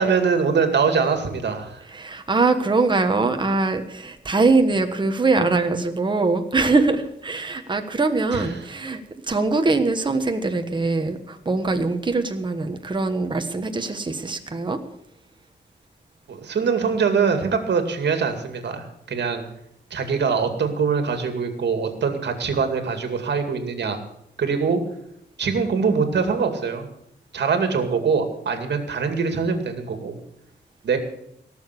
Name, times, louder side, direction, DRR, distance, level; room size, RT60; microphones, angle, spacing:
voice 1, 0.0-1.8 8.3-8.5 16.3-19.4 19.9-24.0 24.4-24.8 25.4-26.9 27.3-30.1 30.8-31.0, right 5 dB, 65° right, 6 dB, 2.3 m, -23 dB
voice 2, 1.9-9.0 9.3-14.8, right 3 dB, 25° right, 6 dB, 1.3 m, -22 dB
17.5 x 7.1 x 8.3 m, 0.76 s
wide cardioid pair, 155°, 19 cm